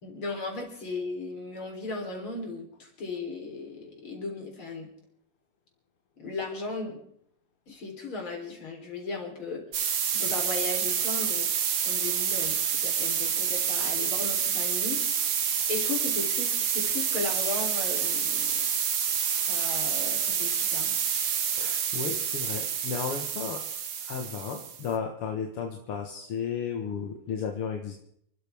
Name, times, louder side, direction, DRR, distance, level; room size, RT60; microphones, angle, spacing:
voice 1, 0.0-4.9 6.2-7.0 7.7-12.5 12.8-18.6 19.5-21.0, left 3 dB, 70° left, 1 dB, 4.6 m, -36 dB
sound 1, 9.7-24.9, right 8 dB, 80° right, 2.3 m, -28 dB
voice 2, 21.5-23.6 24.0-27.9, left 6 dB, 85° left, 2 dB, 2.4 m, -34 dB
29.0 x 13.0 x 3.5 m, 0.70 s
omnidirectional pair, 2.4 m